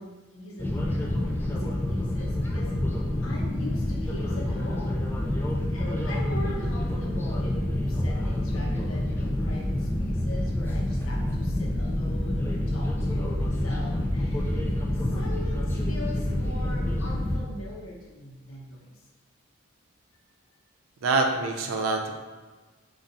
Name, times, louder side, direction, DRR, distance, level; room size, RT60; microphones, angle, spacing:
voice 1, 0.0-2.8 3.2-5.1 5.3-14.7 14.9-18.9, left 1 dB, 70° left, -2 dB, 0.9 m, -42 dB
sound 1, 0.6-17.4, left 1 dB, 10° left, 0.3 m, -27 dB
voice 2, 14.9-15.3 21.0-22.1, right 3 dB, 80° right, 3 dB, 0.5 m, -26 dB
3.9 x 2.5 x 4.1 m, 1.3 s
head